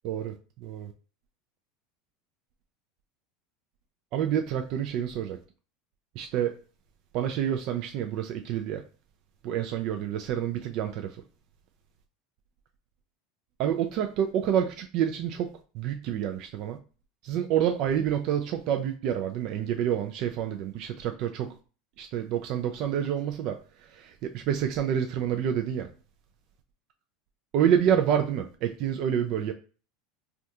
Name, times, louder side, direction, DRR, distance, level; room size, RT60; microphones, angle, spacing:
voice 1, 0.0-0.9 4.1-5.4 6.2-6.5 7.1-8.8 9.4-11.2 13.6-16.8 17.2-21.5 22.0-25.9 27.5-29.5, right 9 dB, 55° right, 0.4 m, -28 dB
3.4 x 2.4 x 2.7 m
supercardioid pair, 110°, 0 cm